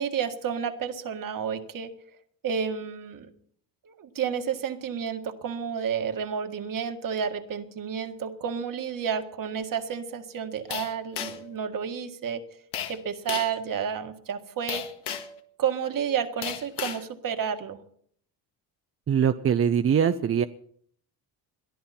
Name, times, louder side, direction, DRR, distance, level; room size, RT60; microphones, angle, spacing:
voice 1, 0.0-1.9 2.4-3.3 3.8-12.4 12.9-14.8 15.6-17.8, right 7 dB, 50° right, 6 dB, 1.8 m, -31 dB
sound 1, 10.7-11.5 12.7-13.0 13.3-13.6 14.7-15.4 16.4-17.0, left 9 dB, 75° left, 1.7 m, -33 dB
voice 2, 19.1-20.5, right 8 dB, 35° right, 9 dB, 0.6 m, -22 dB
22.0 x 13.5 x 4.3 m, 0.62 s
cardioid pair, 105°, 41 cm